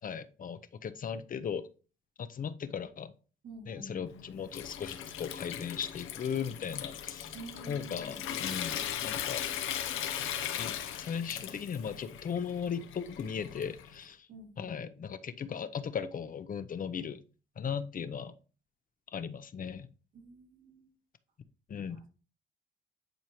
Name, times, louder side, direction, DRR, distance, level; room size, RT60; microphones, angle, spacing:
voice 1, 0.0-1.7 2.2-3.1 3.7-7.4 7.7-9.4 10.5-14.3 14.6-17.2 17.6-18.3 19.1-19.9 21.7-22.0, left 7 dB, 45° left, 11 dB, 0.7 m, -37 dB
voice 2, 3.4-4.3 7.3-8.2 14.3-14.8 20.1-20.9 21.9-22.1, right 2 dB, 80° right, -2 dB, 2.9 m, -49 dB
Water tap faucet / Sink (filling or washing) / Trickle dribble, 4.1-14.0, left 10 dB, 90° left, 0.8 m, -38 dB
10.5 x 4.6 x 3.0 m, 0.36 s
cardioid pair, 90°, 20 cm